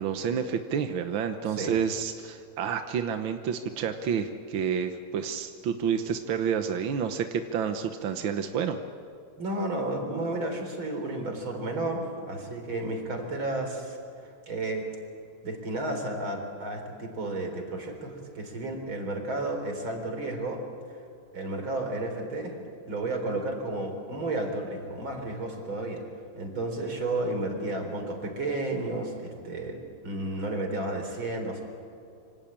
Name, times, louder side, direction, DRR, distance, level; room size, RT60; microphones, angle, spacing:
voice 1, 0.0-8.8, right 7 dB, 60° right, 6 dB, 1.4 m, -29 dB
voice 2, 9.4-14.0 14.5-14.9 15.4-20.6 21.3-26.0 26.3-29.8 30.0-31.6, right 2 dB, 40° right, 4 dB, 4.7 m, -32 dB
26.5 x 25.5 x 8.8 m, 2.4 s
omnidirectional pair, 3.3 m